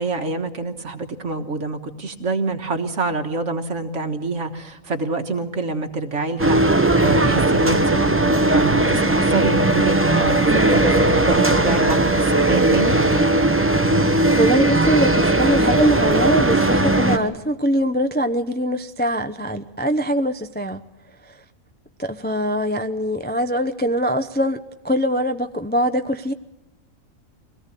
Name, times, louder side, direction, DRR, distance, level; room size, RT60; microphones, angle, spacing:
voice 1, 0.0-6.6 7.0-13.0, right 3 dB, 60° right, 7 dB, 1.8 m, -26 dB
sound 1, 6.4-17.2, right 2 dB, 10° right, 1.1 m, -18 dB
voice 2, 14.4-20.8 21.2-21.4 22.0-26.3, equal, 10° left, 7 dB, 0.5 m, -22 dB
23.5 x 18.0 x 8.3 m, 0.95 s
omnidirectional pair, 1.4 m